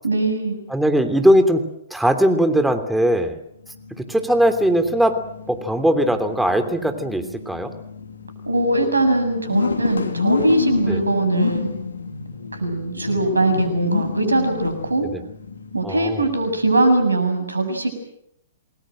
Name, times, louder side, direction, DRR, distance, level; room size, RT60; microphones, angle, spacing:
voice 1, 0.0-0.6 8.5-11.7 12.5-15.0 15.7-17.9, right 2 dB, 90° right, 8 dB, 7.2 m, -21 dB
voice 2, 0.7-1.6 1.9-3.4 4.0-5.2 5.5-7.7 10.9-11.0 15.1-15.2 15.8-16.2, equal, ahead, 7 dB, 3.1 m, -19 dB
sound 1, 3.6-16.9, left 5 dB, 80° left, 2.9 m, -29 dB
28.5 x 20.5 x 7.8 m, 0.77 s
figure-of-eight pair, 120°, 0 cm